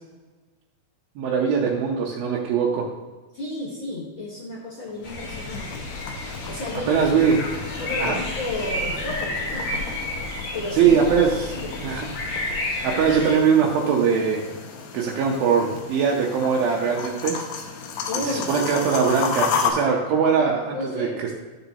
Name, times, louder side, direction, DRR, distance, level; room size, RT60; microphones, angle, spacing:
voice 1, 1.2-2.9 6.9-7.4 8.0-8.2 10.8-11.6 11.8-12.1 12.8-14.5 14.9-17.4 18.3-21.1, right 6 dB, 85° right, -3 dB, 2.8 m, -21 dB
voice 2, 3.3-5.8 6.5-7.0 7.8-9.9 10.5-11.0 11.5-11.7 18.1-18.5 20.7-21.2, left 1 dB, 50° left, -5 dB, 1.6 m, -32 dB
sound 1, 4.9-19.7, left 6 dB, 85° left, 2.8 m, -33 dB
sound 2, 5.0-13.3, left 1 dB, 70° left, 3.7 m, -31 dB
12.5 x 7.0 x 2.9 m, 1.3 s
omnidirectional pair, 4.1 m